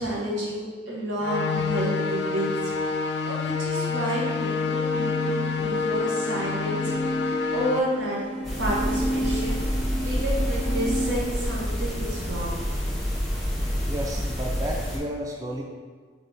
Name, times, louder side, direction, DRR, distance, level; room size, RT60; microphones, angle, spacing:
voice 1, 0.0-8.2 8.6-9.6 10.0-12.6, right 1 dB, 90° right, -5 dB, 1.2 m, -30 dB
sound 1, 1.2-7.8, left 5 dB, 65° left, 0.3 m, -27 dB
sound 2, 4.1-11.1, right 1 dB, 60° right, 0.7 m, -33 dB
sound 3, 8.4-15.0, equal, ahead, 0.8 m, -28 dB
voice 2, 13.4-15.6, right 1 dB, 20° right, -1 dB, 0.4 m, -33 dB
3.4 x 3.2 x 4.1 m, 1.6 s
head